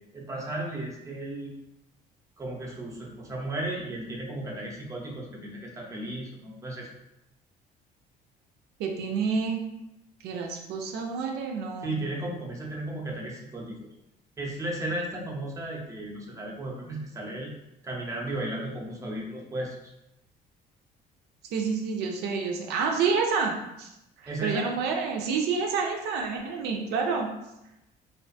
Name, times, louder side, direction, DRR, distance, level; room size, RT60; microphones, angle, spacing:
voice 1, 0.1-1.5 2.4-6.9 11.8-13.8 14.4-17.5 17.8-19.8 24.3-24.7, right 1 dB, 20° right, -2 dB, 0.6 m, -34 dB
voice 2, 8.8-9.6 10.2-12.0 21.5-23.9 24.2-27.3, right 5 dB, 80° right, 2 dB, 0.4 m, -28 dB
2.4 x 2.2 x 2.5 m, 0.89 s
cardioid pair, 110°, 17 cm